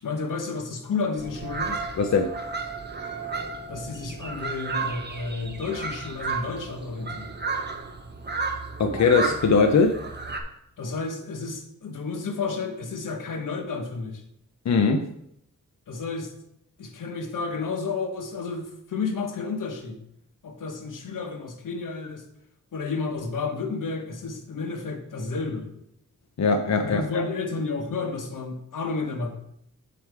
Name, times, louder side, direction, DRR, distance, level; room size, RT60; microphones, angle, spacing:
voice 1, 0.0-1.8 3.7-7.3 10.8-14.2 15.9-16.3 16.8-20.0 20.4-22.2 22.7-25.7 26.8-29.3, left 4 dB, 85° left, 5 dB, 1.1 m, -31 dB
sound 1, 1.2-10.4, right 4 dB, 35° right, 0.9 m, -33 dB
voice 2, 2.0-2.3 8.8-9.9 14.7-15.0 26.4-27.2, left 4 dB, 60° left, 6 dB, 0.6 m, -20 dB
7.1 x 4.7 x 4.7 m, 0.75 s
wide cardioid pair, 85°, 31 cm